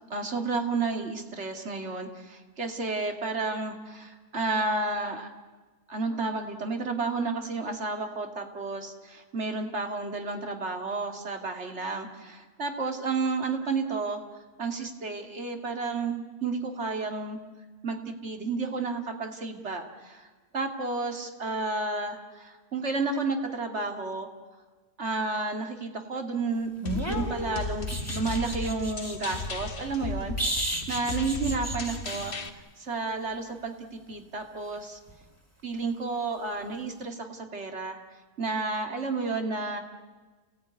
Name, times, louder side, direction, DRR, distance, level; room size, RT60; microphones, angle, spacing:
voice 1, 0.1-5.3 5.9-14.2 14.6-17.4 17.8-20.3 20.5-24.3 25.0-32.4 32.8-35.0 35.6-38.0 38.4-39.8, right 3 dB, 45° right, 4 dB, 2.5 m, -31 dB
sound 1, 26.8-29.5 30.4-32.4 35.1-35.2, right 1 dB, 10° right, 2.9 m, -34 dB
sound 2, 26.9-32.5, left 3 dB, 40° left, 1.4 m, -35 dB
29.0 x 17.5 x 9.6 m, 1.4 s
omnidirectional pair, 1.6 m